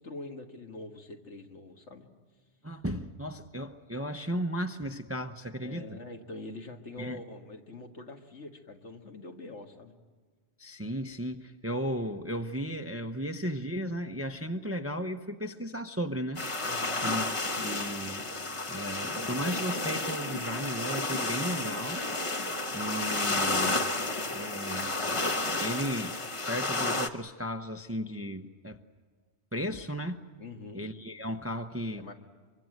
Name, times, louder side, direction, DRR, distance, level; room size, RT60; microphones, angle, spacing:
voice 1, 0.0-2.1 5.6-9.9 16.6-17.0 30.4-30.9 32.0-32.1, left 2 dB, 80° left, 4 dB, 2.1 m, -44 dB
voice 2, 2.6-6.0 7.0-7.2 10.6-16.5 17.0-18.2 18.7-22.0 22.7-23.9 24.3-25.0 25.6-26.2 26.5-28.8 29.5-30.3 30.7-32.1, equal, 15° right, 7 dB, 0.8 m, -35 dB
sound 1, 16.4-27.1, left 2 dB, 30° left, 1.0 m, -31 dB
24.5 x 24.0 x 7.9 m, 1.5 s
omnidirectional pair, 1.2 m